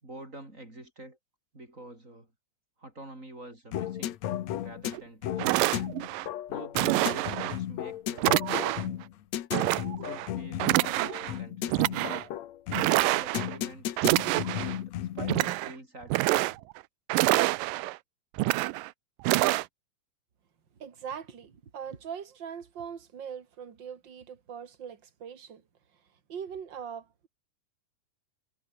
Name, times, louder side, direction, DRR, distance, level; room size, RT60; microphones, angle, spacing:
voice 1, 0.0-1.2 1.5-2.3 2.8-4.2 4.6-5.4 6.5-8.4 10.0-12.1 12.7-14.0 14.6-16.6, right 1 dB, 20° right, 6.5 m, -47 dB
sound 1, 3.7-15.5, left 12 dB, 65° left, 2.1 m, -35 dB
sound 2, 4.9-5.0 5.4-6.3 6.8-7.6 8.2-8.9 9.5-10.3 10.6-11.3 11.7-12.2 12.7-13.6 14.0-14.8 15.2-15.7 16.0-16.8 17.1-18.0 18.4-18.9 19.2-19.6, right 19 dB, 80° right, 2.2 m, -27 dB
voice 2, 20.8-25.6 26.3-27.3, right 7 dB, 35° right, 2.5 m, -41 dB
omnidirectional pair, 4.0 m